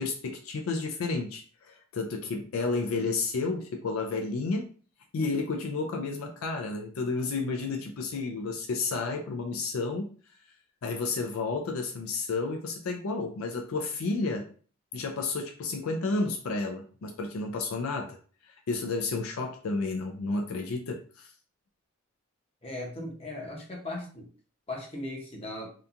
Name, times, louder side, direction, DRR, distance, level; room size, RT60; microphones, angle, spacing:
voice 1, 0.0-4.7 5.1-10.1 10.8-14.5 14.9-18.2 18.4-21.3, left 3 dB, 70° left, 3 dB, 0.4 m, -31 dB
voice 2, 22.6-24.3 24.7-25.7, left 1 dB, 25° left, -2 dB, 0.7 m, -37 dB
2.8 x 2.2 x 2.4 m, 0.41 s
head